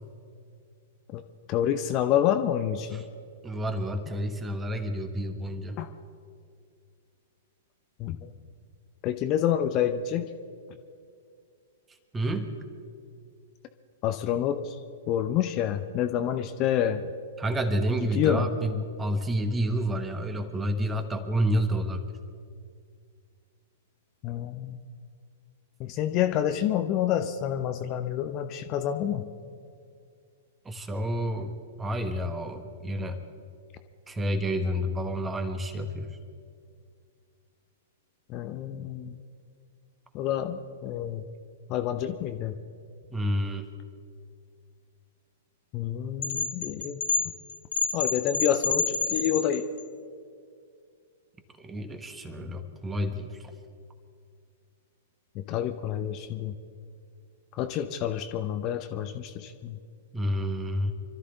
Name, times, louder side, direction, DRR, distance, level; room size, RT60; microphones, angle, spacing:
voice 1, 1.5-3.0 5.8-5.9 8.0-8.3 9.0-10.3 14.0-14.8 15.1-17.0 18.0-18.5 24.2-24.8 25.8-29.3 38.3-39.1 40.1-41.2 41.7-42.6 45.7-47.0 47.9-49.7 55.3-56.5 57.6-59.8, left 10 dB, 35° left, 8 dB, 0.8 m, -28 dB
voice 2, 3.4-5.8 12.1-12.5 17.4-22.1 30.6-33.2 34.1-36.2 43.1-43.6 51.6-53.4 60.1-60.9, equal, 15° right, 7 dB, 1.4 m, -29 dB
sound 1, 46.2-49.8, left 5 dB, 60° left, 1.2 m, -28 dB
26.5 x 13.0 x 4.0 m, 2.3 s
figure-of-eight pair, 105°, 0 cm